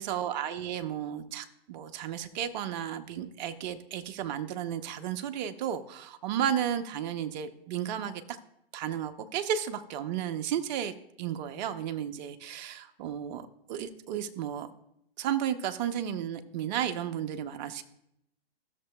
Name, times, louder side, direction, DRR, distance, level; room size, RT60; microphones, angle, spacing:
voice 1, 0.0-8.4 8.7-14.7 15.2-17.8, right 9 dB, 45° right, 9 dB, 0.7 m, -33 dB
14.0 x 6.7 x 2.2 m, 0.78 s
hypercardioid pair, 115°, 31 cm